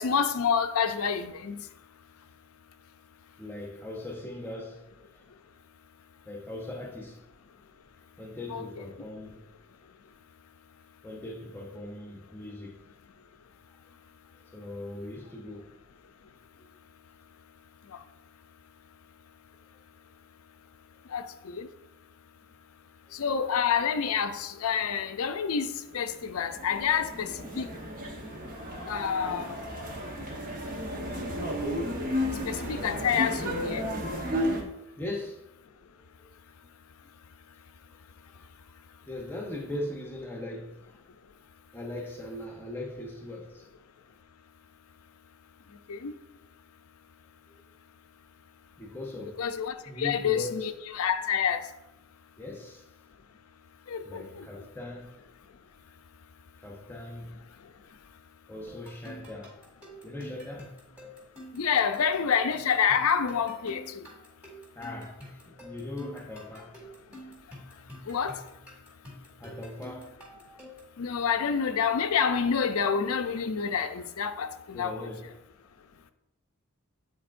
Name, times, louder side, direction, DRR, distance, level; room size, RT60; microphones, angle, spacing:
voice 1, 0.0-1.6 8.5-8.6 21.1-21.7 23.1-27.7 28.9-29.6 32.5-33.9 45.9-46.1 49.4-51.7 53.9-54.5 61.5-63.8 68.1-68.4 71.0-75.1, left 7 dB, 85° left, 0.5 m, -28 dB
voice 2, 3.4-4.9 5.1-5.3 6.2-7.2 8.2-9.4 11.0-12.8 14.5-15.7 16.6-16.7 22.8-23.2 34.8-35.4 36.2-36.3 38.3-38.5 39.1-41.0 41.7-43.7 48.8-49.4 49.9-50.7 52.4-52.9 54.0-55.1 56.6-57.4 58.5-59.7 60.0-60.8 64.8-66.8 69.4-70.1 74.7-75.3, left 1 dB, 10° left, 0.8 m, -40 dB
sound 1, 25.9-34.6, equal, 40° right, 0.9 m, -33 dB
sound 2, 58.7-71.0, equal, 5° right, 2.1 m, -48 dB
9.9 x 3.9 x 2.5 m
head